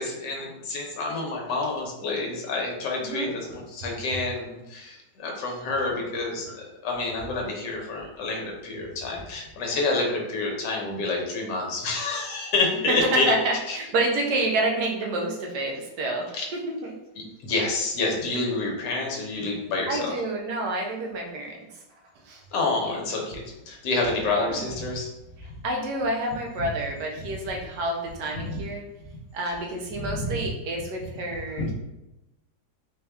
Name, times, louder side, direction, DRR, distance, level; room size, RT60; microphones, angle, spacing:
voice 1, 0.0-13.3 13.7-13.8 16.3-16.4 17.2-20.1 22.5-25.1 28.3-28.6 30.0-30.3 31.6-31.7, left 3 dB, 70° left, 0 dB, 1.4 m, -28 dB
voice 2, 12.9-16.9 19.9-21.6 22.3-22.4 22.7-22.9 24.4-24.7 25.6-28.8 29.3-31.7, right 2 dB, 70° right, 1 dB, 1.2 m, -28 dB
4.2 x 2.3 x 3.4 m, 0.96 s
omnidirectional pair, 2.0 m